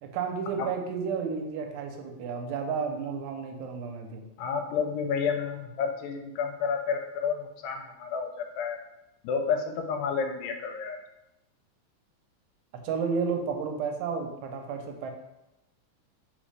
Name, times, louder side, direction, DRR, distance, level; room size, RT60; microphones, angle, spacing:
voice 1, 0.0-4.2 12.8-15.1, right 5 dB, 80° right, 3 dB, 1.9 m, -32 dB
voice 2, 4.4-8.8 9.2-11.0, left 6 dB, 80° left, 4 dB, 1.8 m, -30 dB
4.0 x 3.8 x 3.2 m, 0.93 s
omnidirectional pair, 3.4 m